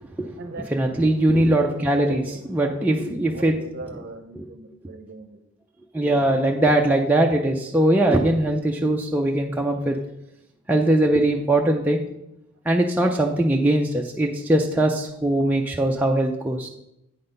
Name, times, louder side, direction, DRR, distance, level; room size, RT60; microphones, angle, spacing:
voice 1, 0.2-1.0 1.7-5.4, right 2 dB, 45° right, 7 dB, 0.7 m, -39 dB
voice 2, 0.7-2.2 2.5-3.5 4.3-4.5 5.9-10.0 10.7-12.0 12.7-16.7, right 1 dB, 5° right, 0 dB, 0.4 m, -21 dB
8.7 x 3.9 x 5.2 m, 0.82 s
head